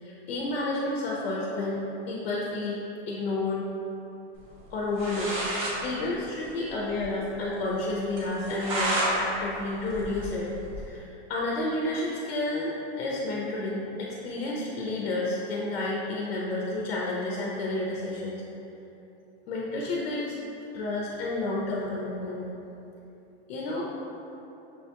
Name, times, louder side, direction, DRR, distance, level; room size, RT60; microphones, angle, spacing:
voice 1, 0.0-1.8 2.1-2.8 3.1-3.7 4.7-18.4 19.5-20.4 20.7-22.5 23.5-23.9, left 2 dB, 60° left, -4 dB, 0.6 m, -31 dB
sound 1, 4.7-4.8 5.0-5.8 6.1-6.2 6.4-6.5 7.0-7.1 7.4-7.5 8.2-9.1 9.5-10.9, right 1 dB, 35° right, 0.6 m, -30 dB
5.7 x 2.2 x 2.8 m, 2.9 s
supercardioid pair, 175°, 33 cm